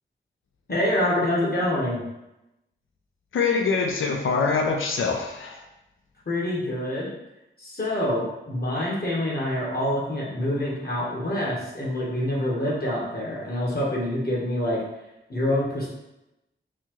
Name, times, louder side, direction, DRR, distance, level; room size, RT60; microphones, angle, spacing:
voice 1, 0.7-2.0 6.3-7.1 7.6-14.8 15.3-15.9, left 1 dB, 50° left, -4 dB, 1.3 m, -26 dB
voice 2, 3.3-5.6, left 4 dB, 90° left, 2 dB, 0.4 m, -24 dB
4.1 x 2.4 x 3.0 m, 0.92 s
cardioid pair, 55°, 20 cm